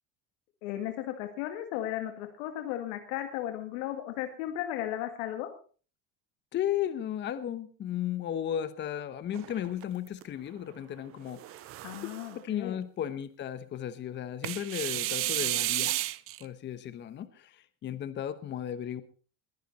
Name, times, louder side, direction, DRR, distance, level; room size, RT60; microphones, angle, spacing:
voice 1, 0.6-5.5 11.8-12.8, left 12 dB, 75° left, 6 dB, 2.1 m, -35 dB
voice 2, 6.5-11.7 12.0-16.1 16.4-19.0, left 10 dB, 30° left, 13 dB, 1.0 m, -35 dB
sound 1, 9.3-10.2 11.3-12.4 14.4-16.4, right 17 dB, 35° right, 0.6 m, -32 dB
21.5 x 10.0 x 4.1 m, 0.39 s
cardioid pair, 145°, 38 cm